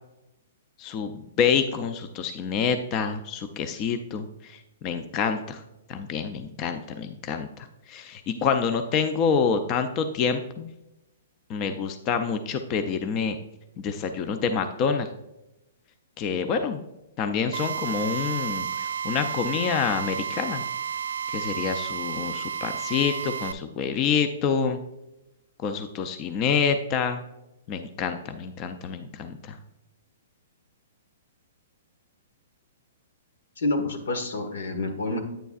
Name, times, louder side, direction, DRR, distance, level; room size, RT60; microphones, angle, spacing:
voice 1, 0.8-5.6 5.9-10.7 11.5-13.4 13.8-15.1 16.2-16.8 17.2-20.6 21.3-24.8 25.6-27.2 27.7-29.6, left 6 dB, 30° left, 8 dB, 0.5 m, -27 dB
Drill, 17.5-23.5, right 7 dB, 75° right, 0.4 m, -31 dB
voice 2, 33.6-35.2, left 2 dB, 80° left, 5 dB, 1.6 m, -28 dB
9.0 x 6.9 x 2.4 m, 0.92 s
hypercardioid pair, 150°, 0 cm